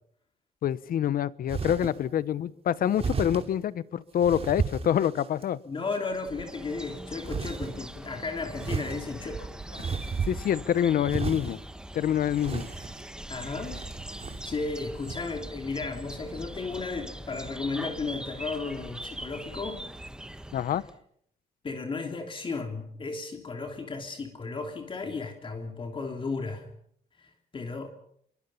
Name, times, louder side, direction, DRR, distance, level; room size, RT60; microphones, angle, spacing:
voice 1, 0.6-5.6 9.8-9.9 10.3-11.6 11.9-12.7 20.5-20.8, left 10 dB, 65° left, 17 dB, 1.0 m, -26 dB
sound 1, 1.5-2.0 3.0-3.5 4.2-5.4 5.9-6.4 7.2-7.7 8.5-10.6 11.1-11.6 12.3-13.1 13.6-14.6 15.0-15.2, right 5 dB, 40° right, 3.1 m, -33 dB
voice 2, 5.6-9.5 13.3-13.8 14.1-19.8 21.6-26.7 27.2-27.9, left 4 dB, 30° left, 3 dB, 3.3 m, -34 dB
sound 2, 6.1-21.0, right 1 dB, 5° right, 1.5 m, -42 dB
26.5 x 23.5 x 5.7 m, 0.67 s
cardioid pair, 130°, 16 cm